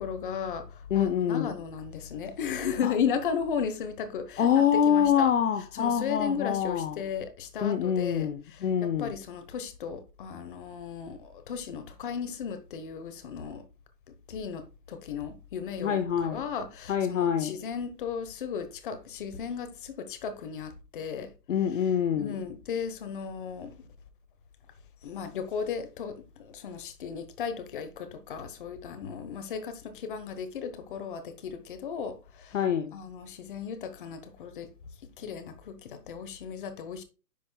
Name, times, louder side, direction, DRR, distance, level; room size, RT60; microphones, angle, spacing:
voice 1, 0.0-5.3 5.8-13.6 14.3-21.3 22.2-23.7 25.0-32.6 32.9-34.7 35.2-37.0, left 7 dB, 30° left, 1.1 m, -35 dB
voice 2, 0.9-1.5 2.8-2.9 4.4-7.0 7.6-9.1 15.8-16.4 16.9-17.5 21.5-22.4 32.5-32.9, left 8 dB, 50° left, 0.8 m, -26 dB
10.5 x 5.2 x 2.3 m
hypercardioid pair, 160°, 49 cm